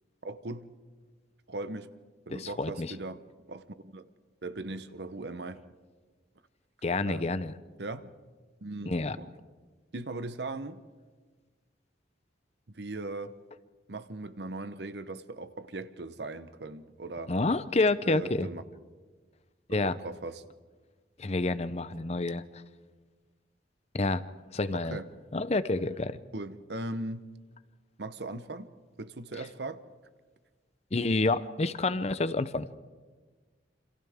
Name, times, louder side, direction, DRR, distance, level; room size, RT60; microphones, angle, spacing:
voice 1, 0.2-0.7 1.5-1.9 2.3-3.2 3.5-4.0 4.4-5.6 7.0-7.3 7.8-8.1 8.6-9.3 9.9-10.8 12.7-13.4 13.9-17.3 18.0-18.6 19.7-20.4 24.7-25.1 26.3-27.2 28.0-28.7 29.0-29.8, right 2 dB, 65° right, 12 dB, 0.9 m, -39 dB
voice 2, 2.3-2.9 6.8-7.5 8.9-9.2 17.3-18.5 19.7-19.9 21.2-22.4 23.9-24.2 24.5-25.0 25.3-26.2 30.9-32.7, left 2 dB, 35° left, 14 dB, 0.6 m, -28 dB
28.5 x 26.5 x 3.6 m, 1.4 s
head